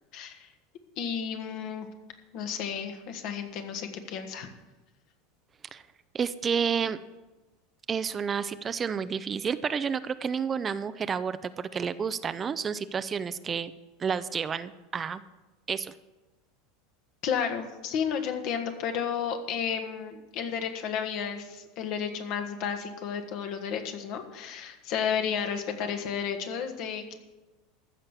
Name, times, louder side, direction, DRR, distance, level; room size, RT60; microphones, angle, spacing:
voice 1, 0.1-0.5 1.0-1.9 2.3-4.5 17.2-27.2, left 7 dB, 55° left, 5 dB, 1.6 m, -32 dB
voice 2, 6.1-7.0 7.9-13.7 14.0-15.2 15.7-15.9, right 6 dB, 30° right, 13 dB, 0.5 m, -30 dB
14.5 x 6.5 x 7.2 m, 1.1 s
hypercardioid pair, 80°, 0 cm